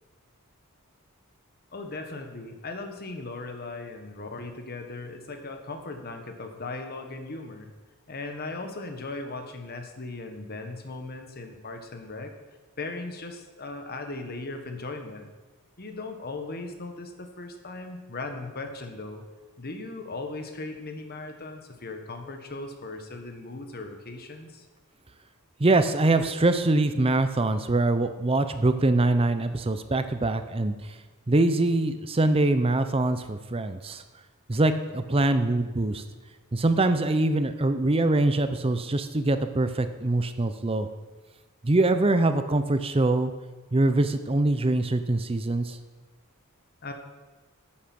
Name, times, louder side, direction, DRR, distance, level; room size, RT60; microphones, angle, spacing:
voice 1, 1.7-7.7 8.1-12.3 12.8-15.3 15.8-19.2 19.6-24.7 46.8-46.9, left 3 dB, 45° left, 5 dB, 1.3 m, -38 dB
voice 2, 25.6-30.7 31.3-34.0 34.5-36.0 36.5-40.9 41.6-43.3 43.7-45.8, right 2 dB, 25° right, 10 dB, 0.6 m, -23 dB
10.0 x 8.7 x 6.0 m, 1.2 s
head